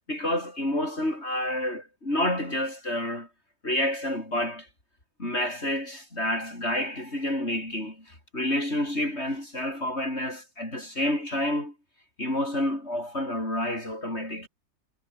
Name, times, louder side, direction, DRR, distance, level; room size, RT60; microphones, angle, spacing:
voice 1, 0.1-3.3 3.6-4.7 5.2-11.7 12.2-14.5, left 1 dB, 40° left, 8.2 m, -29 dB
omnidirectional pair, 1.7 m